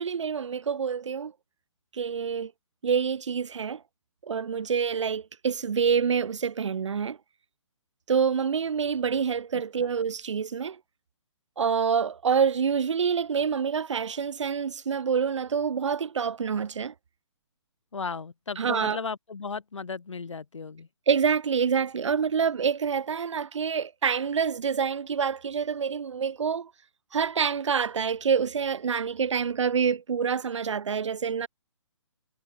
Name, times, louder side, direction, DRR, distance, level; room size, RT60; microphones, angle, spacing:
voice 1, 0.0-1.3 1.9-2.5 2.8-3.8 4.2-7.2 8.1-10.8 11.6-16.9 18.6-19.0 21.1-26.7 27.1-31.5, right 6 dB, 70° right, 0.7 m, -27 dB
voice 2, 17.9-20.9, left 5 dB, 70° left, 5.1 m, -35 dB
figure-of-eight pair, 135°, 16 cm